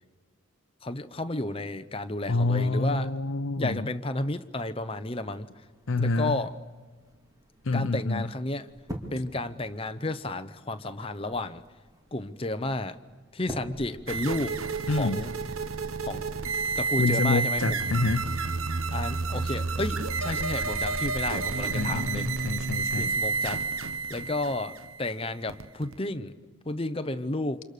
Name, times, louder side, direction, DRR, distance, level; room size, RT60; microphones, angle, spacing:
voice 1, 0.8-3.1 3.6-5.5 6.0-6.5 7.7-8.7 9.1-11.6 12.1-13.0 13.3-14.5 14.9-15.3 16.0-16.5 16.8-17.8 18.9-22.4 23.0-23.6 24.1-26.3 26.7-27.6, left 2 dB, 25° left, 10 dB, 0.9 m, -32 dB
voice 2, 2.3-3.9 5.9-6.4 7.7-8.3 14.9-15.2 17.0-18.3 21.7-23.1, left 3 dB, 75° left, 10 dB, 0.7 m, -27 dB
sound 1, 5.2-16.0, equal, 15° right, 2.8 m, -47 dB
sound 2, 14.1-26.0, right 4 dB, 85° right, 1.0 m, -30 dB
29.5 x 26.5 x 6.8 m, 1.4 s
head